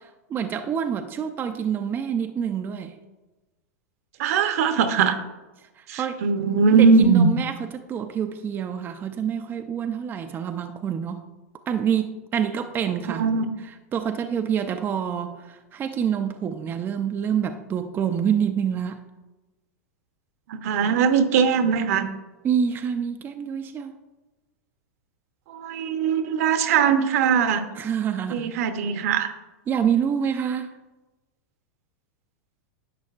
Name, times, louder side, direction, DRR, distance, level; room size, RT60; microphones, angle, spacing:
voice 1, 0.0-3.0 5.8-6.2 6.7-11.2 11.7-13.3 13.6-19.0 22.4-23.9 27.8-28.5 29.7-30.8, right 8 dB, 25° right, 6 dB, 0.5 m, -27 dB
voice 2, 4.2-5.2 5.9-7.3 13.1-13.5 20.5-22.1 25.5-27.6 28.3-29.3, right 6 dB, 65° right, 8 dB, 0.9 m, -20 dB
11.0 x 7.4 x 2.4 m, 1.1 s
hypercardioid pair, 125°, 9 cm